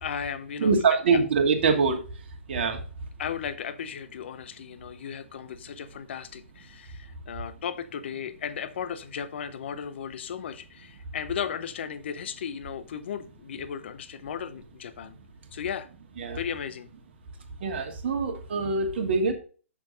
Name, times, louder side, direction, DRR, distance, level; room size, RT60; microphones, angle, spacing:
voice 1, 0.0-1.2 3.2-15.2 15.5-15.9 16.3-16.9, left 8 dB, 55° left, 0.6 m, -35 dB
voice 2, 0.6-2.0 2.5-2.8 16.2-16.4 17.6-19.3, right 4 dB, 55° right, 1.4 m, -24 dB
6.3 x 6.0 x 3.8 m
figure-of-eight pair, 125°, 7 cm